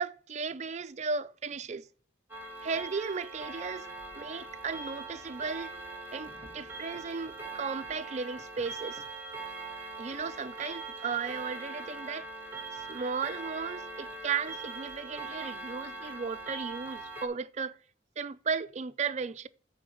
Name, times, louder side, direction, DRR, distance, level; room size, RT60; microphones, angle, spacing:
voice 1, 0.0-1.9 2.6-3.9 4.1-5.7 6.1-9.0 10.0-12.3 12.7-17.8 18.2-19.5, right 5 dB, 40° right, 0.4 m, -35 dB
Clock, 2.3-17.3, right 3 dB, 10° right, 1.2 m, -41 dB
8.6 x 3.8 x 6.6 m
head